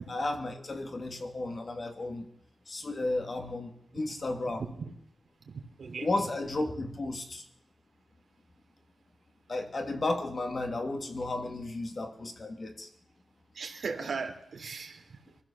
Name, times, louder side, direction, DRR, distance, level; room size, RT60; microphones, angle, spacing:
voice 1, 0.0-2.3 2.7-4.6 6.0-7.4 9.5-12.9, left 2 dB, 35° left, 5 dB, 2.7 m, -33 dB
voice 2, 4.6-4.9 5.5-6.1 13.5-15.2, right 5 dB, 55° right, 2 dB, 3.5 m, -38 dB
23.5 x 15.5 x 7.2 m, 0.70 s
wide cardioid pair, 155°, 0 cm